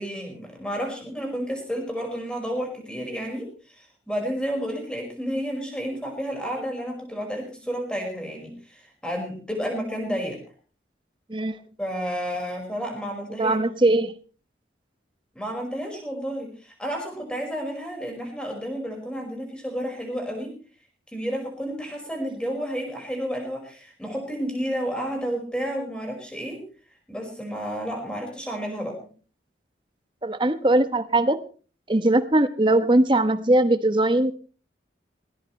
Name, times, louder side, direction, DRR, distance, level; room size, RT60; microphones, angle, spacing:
voice 1, 0.0-10.4 11.8-13.6 15.4-20.6 21.1-26.6 27.1-29.0, equal, 5° left, 2 dB, 5.2 m, -31 dB
voice 2, 13.4-14.1 30.2-31.4 31.9-34.5, right 1 dB, 25° right, 11 dB, 1.0 m, -20 dB
19.0 x 18.5 x 3.2 m, 0.38 s
head